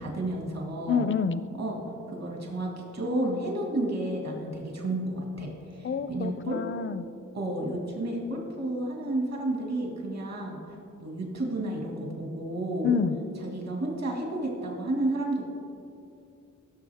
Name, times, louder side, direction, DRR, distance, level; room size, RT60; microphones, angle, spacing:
voice 1, 0.0-1.1 1.5-1.8 2.1-6.6 7.3-12.9 13.4-15.4, right 1 dB, 55° right, -1 dB, 2.1 m, -31 dB
voice 2, 0.9-1.4 5.8-7.0 12.8-13.2, left 6 dB, 40° left, 13 dB, 0.4 m, -27 dB
16.0 x 6.8 x 3.5 m, 2.6 s
cardioid pair, 80°, 31 cm